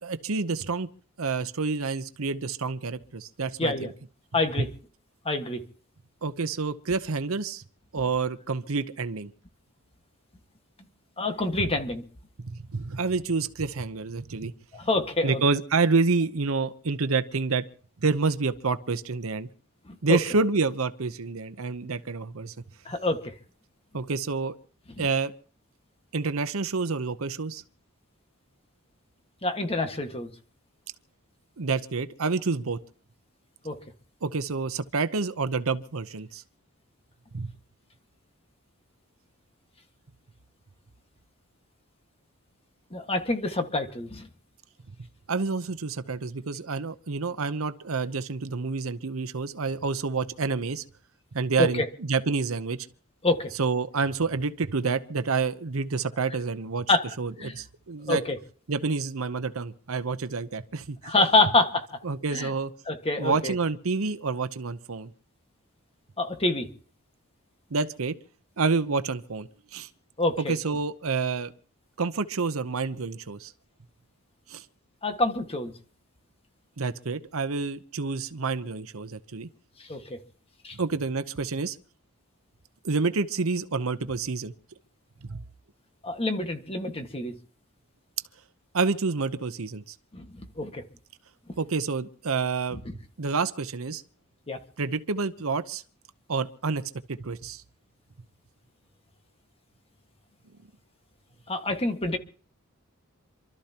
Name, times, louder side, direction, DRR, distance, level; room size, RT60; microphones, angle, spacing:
voice 1, 0.0-0.9 1.2-3.9 6.2-7.6 7.9-9.3 12.4-14.5 15.2-17.6 18.0-19.5 20.0-22.5 23.9-24.5 25.0-25.3 26.1-27.6 31.6-32.8 34.2-36.4 37.3-37.5 45.3-50.8 51.3-52.9 53.6-56.9 57.2-58.2 58.7-61.1 62.0-62.7 63.2-65.1 67.7-68.2 68.6-69.9 70.4-71.5 72.0-73.5 74.5-74.6 76.8-79.5 80.7-81.8 82.8-84.5 85.3-85.4 88.7-89.9 91.6-92.8 93.2-94.0 94.8-95.8 96.3-96.8 97.1-97.6, right 4 dB, 70° right, 0.8 m, -28 dB
voice 2, 3.6-3.9 4.3-4.7 5.2-5.6 11.2-12.0 14.7-15.4 19.8-20.2 22.8-23.3 25.0-25.1 29.4-30.3 33.6-33.7 42.9-44.3 51.6-51.9 53.2-53.5 56.9-57.0 57.4-57.5 58.1-58.4 61.0-61.8 62.3-62.5 62.9-63.5 66.2-66.7 70.2-70.6 75.0-75.7 79.8-80.2 80.6-80.8 86.0-87.3 90.1-90.3 90.6-90.8 92.7-92.8 94.5-94.6 101.5-102.2, left 2 dB, 25° left, 1.7 m, -26 dB
27.5 x 13.0 x 2.9 m
head